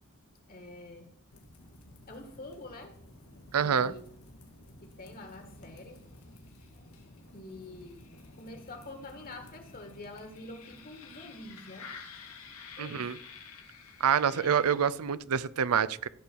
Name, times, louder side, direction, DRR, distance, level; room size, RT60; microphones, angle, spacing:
voice 1, 0.5-1.1 2.1-3.0 3.6-4.0 4.8-6.1 6.7-6.9 7.3-11.9 12.8-13.1 14.3-14.5, left 2 dB, 40° left, 1.7 m, -46 dB
sound 1, 1.3-15.2, left 4 dB, 85° left, 2.1 m, -51 dB
voice 2, 3.5-3.9 12.8-13.2 14.0-16.1, right 7 dB, 90° right, 0.5 m, -27 dB
15.0 x 7.0 x 4.6 m
head